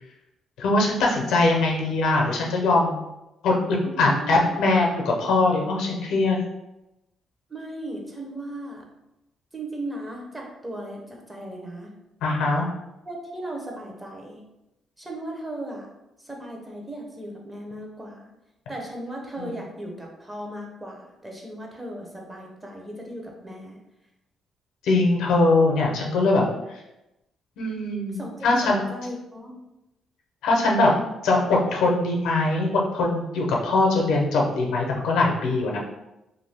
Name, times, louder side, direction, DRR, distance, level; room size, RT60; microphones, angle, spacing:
voice 1, 0.6-3.0 3.4-6.4 12.2-12.7 24.8-26.4 27.6-28.8 30.4-30.9 31.2-35.8, left 2 dB, 85° left, -1 dB, 0.6 m, -21 dB
voice 2, 3.8-4.6 7.5-8.8 9.5-11.9 13.0-14.4 15.0-15.9 16.2-18.3 18.7-23.8 28.1-29.6, right 1 dB, 15° right, -1 dB, 0.7 m, -37 dB
2.5 x 2.3 x 3.3 m, 0.93 s
cardioid pair, 90°, 0 cm